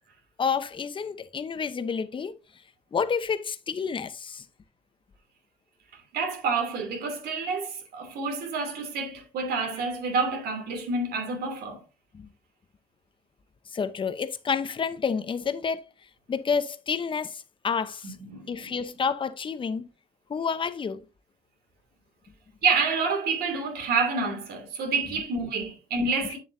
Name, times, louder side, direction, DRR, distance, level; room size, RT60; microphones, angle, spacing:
voice 1, 0.4-2.3 2.9-4.4 12.1-12.3 13.7-15.8 16.3-18.2 18.5-19.9 20.3-21.0, left 6 dB, 30° left, 0.9 m, -29 dB
voice 2, 6.1-11.8 18.0-18.7 22.6-26.4, right 4 dB, 70° right, 3.0 m, -28 dB
8.5 x 7.3 x 2.7 m
cardioid pair, 110°, 17 cm